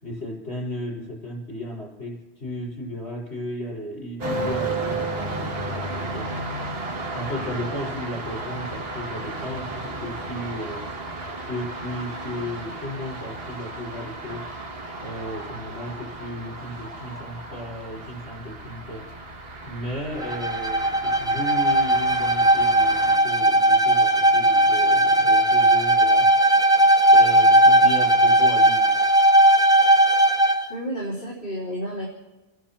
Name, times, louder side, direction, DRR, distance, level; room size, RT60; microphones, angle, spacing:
voice 1, 0.0-6.3 7.1-10.8 11.4-14.5 15.0-19.1 19.6-26.3 27.1-28.9, left 1 dB, 85° left, -3 dB, 6.2 m, -34 dB
sound 1, 4.2-23.2, right 2 dB, 65° right, 1.7 m, -34 dB
Bowed string instrument, 20.2-30.7, right 1 dB, 5° right, 0.6 m, -17 dB
voice 2, 30.7-32.1, equal, 55° left, -5 dB, 3.5 m, -31 dB
29.0 x 11.0 x 4.6 m, 1.2 s
omnidirectional pair, 1.1 m